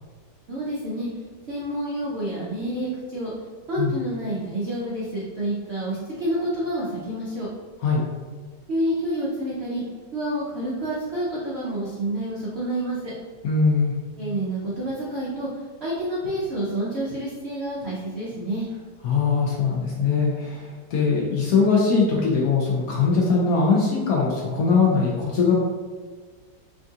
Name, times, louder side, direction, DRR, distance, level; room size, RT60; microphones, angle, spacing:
voice 1, 0.5-1.1 1.5-3.3 3.7-7.5 8.7-9.8 10.1-13.1 14.2-15.5 15.8-18.7, right 1 dB, 90° right, -6 dB, 0.5 m, -28 dB
voice 2, 13.4-13.9 19.0-25.5, left 4 dB, 70° left, -3 dB, 0.9 m, -21 dB
3.6 x 2.3 x 2.7 m, 1.5 s
omnidirectional pair, 1.9 m